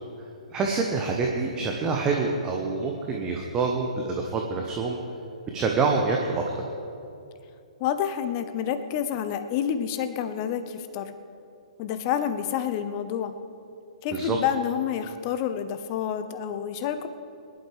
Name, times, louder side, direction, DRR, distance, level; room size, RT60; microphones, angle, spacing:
voice 1, 0.5-5.0 5.5-6.6 14.1-14.4, right 4 dB, 20° right, 1 dB, 1.2 m, -26 dB
voice 2, 7.8-11.1 11.8-13.3 14.0-17.1, left 9 dB, 35° left, 10 dB, 0.8 m, -28 dB
22.5 x 11.5 x 3.5 m, 2.6 s
figure-of-eight pair, 120°, 4 cm